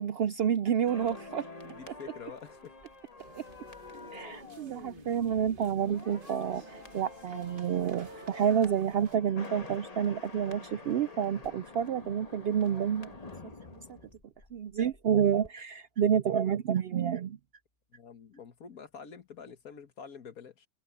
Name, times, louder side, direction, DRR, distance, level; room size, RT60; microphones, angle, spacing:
voice 1, 0.0-1.4 3.4-3.5 4.1-13.2 13.4-13.5 13.9-14.0 14.5-17.4, right 8 dB, 65° right, 0.6 m, -29 dB
sound 1, 0.9-15.0 15.3-15.5, left 3 dB, 30° left, 1.4 m, -48 dB
voice 2, 1.6-2.7 17.9-20.7, left 6 dB, 85° left, 2.0 m, -47 dB
sound 2, 3.2-9.2, right 3 dB, 40° right, 1.5 m, -51 dB
open air
omnidirectional pair, 1.5 m